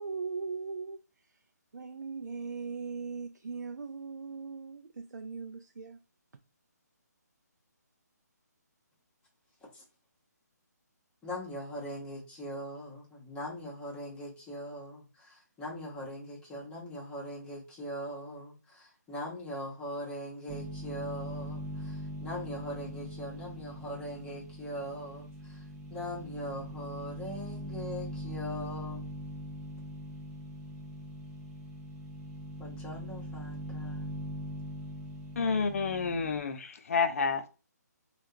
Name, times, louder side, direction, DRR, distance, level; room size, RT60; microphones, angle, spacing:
voice 1, 0.0-1.3 1.7-6.0, right 4 dB, 80° right, 0.4 m, -39 dB
voice 2, 11.2-25.6 25.9-29.1 32.6-34.2, equal, 10° left, 1.0 m, -41 dB
sound 1, 20.5-36.4, right 1 dB, 10° right, 0.7 m, -41 dB
voice 3, 35.4-37.5, left 5 dB, 50° left, 0.6 m, -29 dB
3.4 x 2.3 x 2.7 m
figure-of-eight pair, 145°, 9 cm